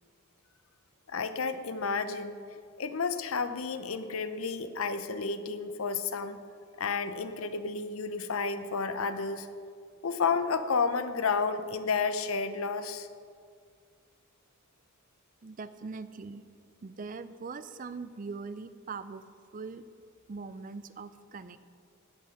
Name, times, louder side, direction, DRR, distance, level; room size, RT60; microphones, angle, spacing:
voice 1, 1.1-2.4 2.8-6.4 6.8-9.5 10.0-13.1, left 5 dB, 80° left, 11 dB, 0.7 m, -31 dB
voice 2, 15.4-16.4 16.8-19.2 19.5-19.8 20.3-21.6, right 4 dB, 40° right, 13 dB, 0.4 m, -41 dB
16.5 x 5.8 x 6.5 m, 2.1 s
head